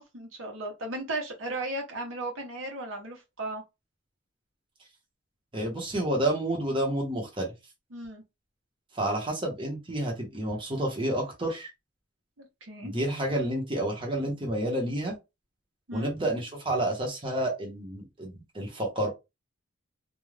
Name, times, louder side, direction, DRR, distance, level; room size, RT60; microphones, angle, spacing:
voice 1, 0.0-3.6 7.9-8.2 12.4-12.9 15.9-16.1, right 2 dB, 75° right, 0.9 m, -36 dB
voice 2, 5.5-7.5 8.9-11.7 12.8-15.1 15.9-19.1, right 1 dB, 25° right, 0.8 m, -29 dB
2.4 x 2.3 x 3.1 m
head